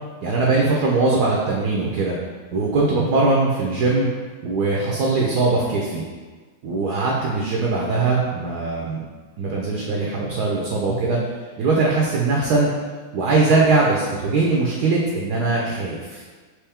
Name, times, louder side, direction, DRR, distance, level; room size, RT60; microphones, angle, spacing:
voice 1, 0.2-2.2 2.5-4.1 4.4-6.0 6.6-9.0 9.4-11.2 11.6-12.7 13.1-16.1, right 3 dB, 70° right, -3 dB, 1.0 m, -21 dB
4.5 x 3.1 x 3.5 m, 1.4 s
omnidirectional pair, 2.1 m